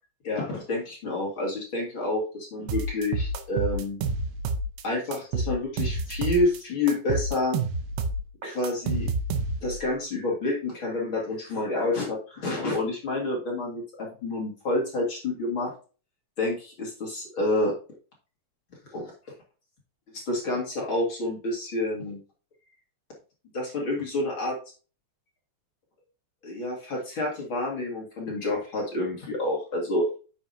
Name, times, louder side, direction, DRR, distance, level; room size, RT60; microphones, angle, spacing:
voice 1, 0.2-4.0 4.8-7.6 8.4-9.1 9.6-15.7 16.4-17.7 18.9-19.1 20.1-22.2 23.5-24.6 26.4-30.1, left 2 dB, 40° left, -2 dB, 2.1 m, -28 dB
sound 1, 2.7-4.8 5.1-6.6 6.9-9.8, right 3 dB, 85° right, 2.9 m, -29 dB
9.5 x 7.0 x 2.7 m, 0.36 s
omnidirectional pair, 4.5 m